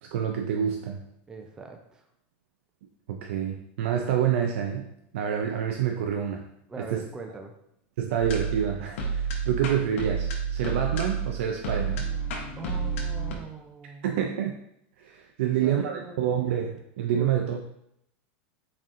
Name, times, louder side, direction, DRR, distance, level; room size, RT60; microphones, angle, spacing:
voice 1, 0.0-1.0 3.1-4.9 5.1-6.4 6.8-7.0 8.0-12.1 14.0-14.6 15.0-17.7, right 9 dB, 90° right, 3 dB, 0.4 m, -28 dB
voice 2, 1.3-2.1 6.7-7.5 12.5-14.1 15.4-16.3 17.2-17.3, right 4 dB, 10° right, 4 dB, 0.3 m, -41 dB
sound 1, 8.2-13.3, right 5 dB, 85° left, 0.8 m, -30 dB
4.1 x 3.6 x 2.5 m, 0.76 s
supercardioid pair, 160°, 7 cm